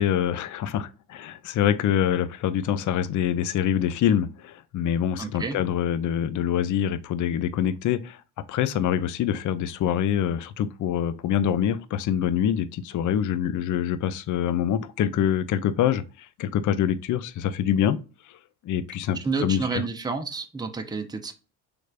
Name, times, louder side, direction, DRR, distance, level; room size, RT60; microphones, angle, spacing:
voice 1, 0.0-8.2 8.5-18.0 18.6-19.8, left 9 dB, 45° left, 0.5 m, -25 dB
voice 2, 5.2-5.6 19.2-21.3, right 4 dB, 10° right, 0.6 m, -30 dB
3.3 x 3.1 x 2.4 m
hypercardioid pair, 55°, 45 cm